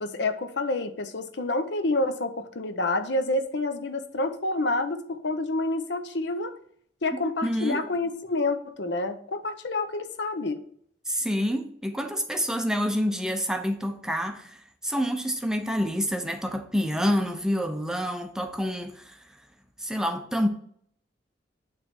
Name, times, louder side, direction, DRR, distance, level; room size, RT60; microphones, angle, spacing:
voice 1, 0.0-6.6 7.0-10.6, left 2 dB, 65° left, 0.7 m, -28 dB
voice 2, 7.1-7.9 11.1-19.2 19.8-20.5, equal, 5° right, 0.6 m, -28 dB
9.1 x 3.3 x 6.0 m
head